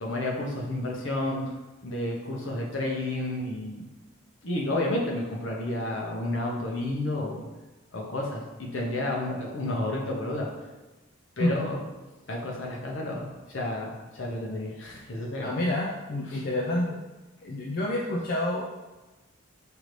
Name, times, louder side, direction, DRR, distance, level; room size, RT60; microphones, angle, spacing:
voice 1, 0.0-1.4 1.8-3.9 4.4-7.4 7.9-10.5 11.4-11.8 12.3-15.5 16.3-16.4, left 1 dB, 65° left, -1 dB, 0.8 m, -31 dB
voice 2, 15.4-17.0 17.4-18.8, left 1 dB, 45° left, -3 dB, 0.3 m, -28 dB
4.8 x 2.6 x 3.2 m, 1.1 s
head